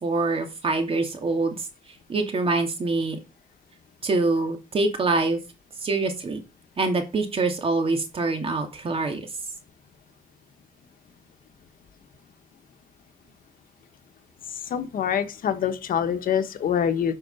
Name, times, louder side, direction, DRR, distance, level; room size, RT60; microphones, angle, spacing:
voice 1, 0.0-1.6 2.1-3.2 4.0-5.4 5.8-6.4 6.8-9.3, right 3 dB, 40° right, 2.6 m, -25 dB
voice 2, 14.7-17.1, left 8 dB, 80° left, 1.4 m, -25 dB
10.5 x 5.7 x 5.5 m
cardioid pair, 130°, 14 cm